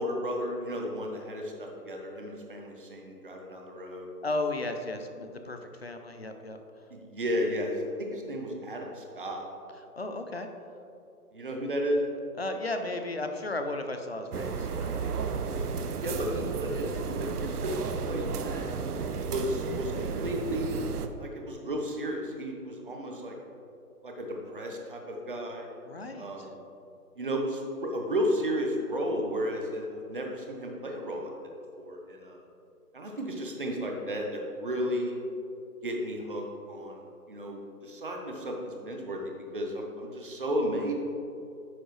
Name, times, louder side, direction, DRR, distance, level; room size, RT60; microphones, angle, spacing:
voice 1, 0.0-4.1 6.9-9.4 11.3-12.0 16.0-18.7 19.3-20.8 21.2-23.3 24.0-25.7 26.2-26.5 27.2-31.3 31.8-32.4 32.9-35.2 35.8-37.0 37.3-40.9, equal, 35° right, 1 dB, 0.9 m, -33 dB
voice 2, 4.2-6.6 10.0-10.5 12.4-15.2 25.8-26.5, left 2 dB, 45° left, 6 dB, 0.5 m, -34 dB
sound 1, 14.3-21.1, right 5 dB, 70° right, 0.7 m, -33 dB
10.0 x 6.3 x 3.2 m, 2.7 s
hypercardioid pair, 175°, 47 cm